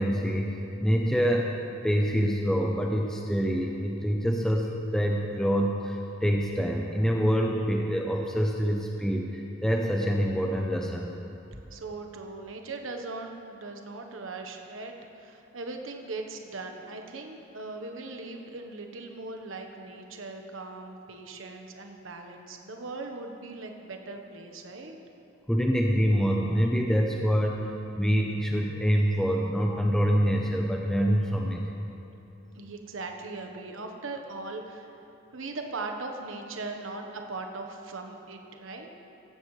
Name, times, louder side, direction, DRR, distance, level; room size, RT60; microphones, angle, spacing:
voice 1, 0.0-1.6 1.8-11.1 25.5-27.7 28.0-31.6, equal, 5° left, 0 dB, 0.7 m, -26 dB
voice 2, 11.7-25.0 32.5-38.9, right 3 dB, 90° right, 3 dB, 1.1 m, -39 dB
16.5 x 15.0 x 3.2 m, 2.9 s
head